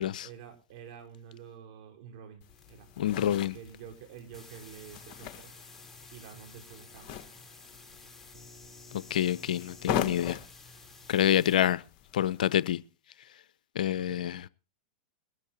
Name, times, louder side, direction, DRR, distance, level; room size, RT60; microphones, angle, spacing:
voice 1, 0.2-5.5 6.1-7.3 13.9-14.3, right 8 dB, 60° right, 4.7 m, -49 dB
sound 1, 2.4-12.8, left 9 dB, 45° left, 1.4 m, -41 dB
sound 2, 2.5-11.6, left 3 dB, 5° left, 3.8 m, -52 dB
voice 2, 3.0-3.5 8.9-10.4 11.1-11.8 12.1-12.8 13.7-14.5, left 11 dB, 80° left, 0.7 m, -27 dB
22.0 x 12.5 x 2.8 m
hypercardioid pair, 120°, 4 cm